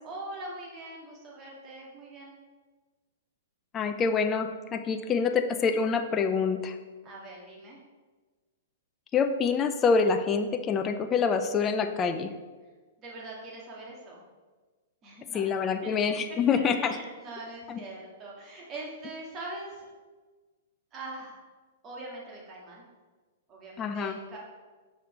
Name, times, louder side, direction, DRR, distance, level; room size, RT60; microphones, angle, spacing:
voice 1, 0.0-2.4 7.0-7.8 13.0-14.3 15.0-16.1 16.7-19.9 20.9-21.4 21.8-22.8 23.5-24.4, right 2 dB, 25° right, -3 dB, 2.2 m, -42 dB
voice 2, 3.7-6.8 9.1-12.3 15.3-16.9 17.7-17.8 23.8-24.2, left 5 dB, 20° left, 7 dB, 0.5 m, -26 dB
5.9 x 5.1 x 5.1 m, 1.3 s
hypercardioid pair, 140°, 0 cm